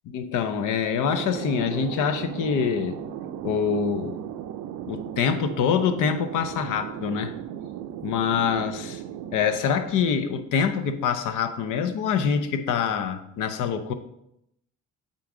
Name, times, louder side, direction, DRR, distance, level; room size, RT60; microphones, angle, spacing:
voice 1, 0.1-3.0 3.4-4.2 4.9-7.3 8.0-9.0 9.3-13.9, left 7 dB, 90° left, 9 dB, 0.7 m, -25 dB
Thunder, 1.0-10.4, right 10 dB, 80° right, 0.5 m, -36 dB
8.3 x 3.8 x 3.7 m, 0.78 s
cardioid pair, 90°, 30 cm